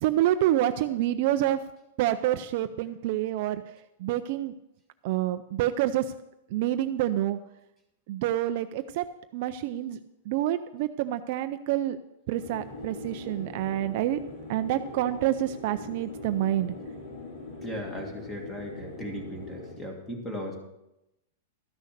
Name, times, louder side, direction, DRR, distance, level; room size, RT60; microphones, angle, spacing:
voice 1, 0.0-1.6 2.0-3.6 4.0-4.5 5.0-6.1 6.5-7.4 8.1-9.0 9.3-10.0 10.3-12.0 12.3-14.2 14.5-16.7, right 13 dB, 40° right, 10 dB, 0.4 m, -27 dB
sound 1, 12.4-19.7, left 2 dB, 45° left, 3.9 m, -42 dB
voice 2, 17.6-20.5, equal, 10° left, 2 dB, 1.8 m, -37 dB
13.0 x 6.6 x 6.5 m, 0.89 s
supercardioid pair, 170°, 0 cm